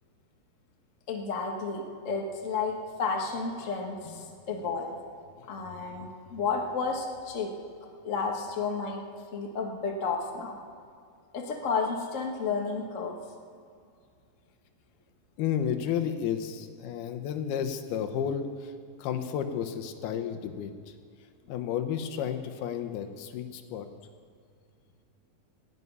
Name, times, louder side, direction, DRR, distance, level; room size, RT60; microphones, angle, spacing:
voice 1, 1.1-4.9 5.5-7.5 8.0-9.0 9.3-10.6 11.3-13.2, left 4 dB, 70° left, 1 dB, 0.7 m, -32 dB
voice 2, 4.0-4.6 5.4-5.5 15.4-18.7 19.0-21.0 21.5-23.9, left 8 dB, 90° left, 8 dB, 2.9 m, -32 dB
12.5 x 11.0 x 9.5 m, 2.3 s
omnidirectional pair, 4.3 m